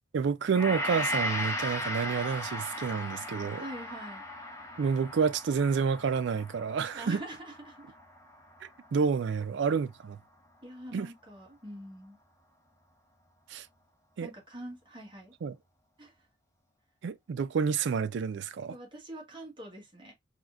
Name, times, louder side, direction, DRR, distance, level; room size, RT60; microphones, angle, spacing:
voice 1, 0.1-3.6 4.8-7.2 8.9-10.2 10.9-11.1 13.5-13.7 14.2-14.3 15.4-15.6 17.0-18.7, right 6 dB, 60° right, 0.4 m, -29 dB
Gong, 0.5-9.0 9.3-9.5, left 1 dB, 15° left, 0.8 m, -37 dB
voice 2, 3.5-4.2 6.9-7.9 10.6-12.2 14.2-15.3 16.0-16.1 18.7-20.1, right 1 dB, 25° right, 1.2 m, -44 dB
3.5 x 2.6 x 2.3 m
head